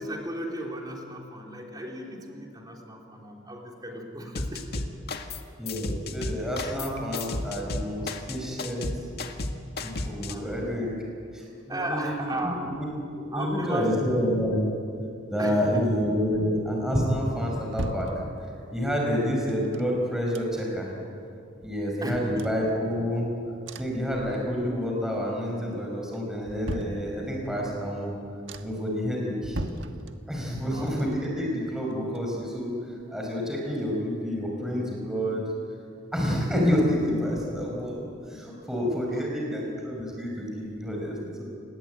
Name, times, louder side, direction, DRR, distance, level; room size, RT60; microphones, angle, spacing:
voice 1, 0.0-4.9 9.9-10.9 11.7-12.7 13.3-13.9 15.4-15.9 22.0-22.4 30.5-30.9 39.1-39.2, right 1 dB, 20° right, 0 dB, 4.0 m, -36 dB
sound 1, 4.3-5.4 5.7-10.3, left 2 dB, 55° left, 1.8 m, -33 dB
voice 2, 5.6-8.9 9.8-11.0 11.3-12.9 13.3-14.7 15.3-18.1 18.7-20.9 21.6-23.3 23.8-28.1 28.6-29.6 30.3-32.8 33.1-35.4 36.1-41.4, equal, 5° right, -2 dB, 5.3 m, -28 dB
sound 2, 17.2-18.8 19.5-20.9 21.3-21.4 21.6-23.2 23.6-24.8 25.1-25.6 26.1-27.6 28.0-28.1 28.5-28.9 29.4-30.6 30.9-32.7 33.0-33.1, right 1 dB, 70° right, 1.5 m, -40 dB
28.0 x 20.5 x 9.2 m, 2.6 s
head